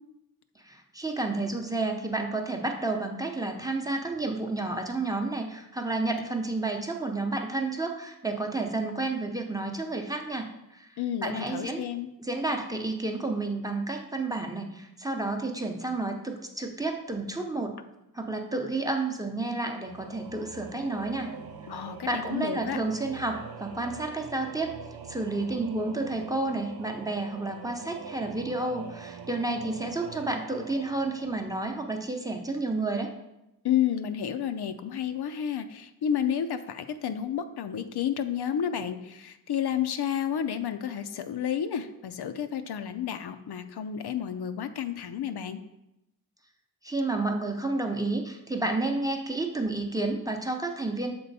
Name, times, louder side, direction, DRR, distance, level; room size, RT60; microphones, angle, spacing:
voice 1, 0.6-10.9 11.2-11.9 12.2-17.7 18.1-21.3 21.7-21.8 22.1-24.7 25.1-33.1 46.8-51.1, right 2 dB, 10° right, 3 dB, 0.6 m, -31 dB
voice 2, 11.0-12.1 21.7-22.8 33.6-45.6, left 9 dB, 90° left, 9 dB, 0.5 m, -31 dB
Singing / Musical instrument, 19.8-32.4, right 6 dB, 75° right, 0.6 m, -44 dB
6.9 x 4.3 x 4.1 m, 0.89 s
wide cardioid pair, 125°, 38 cm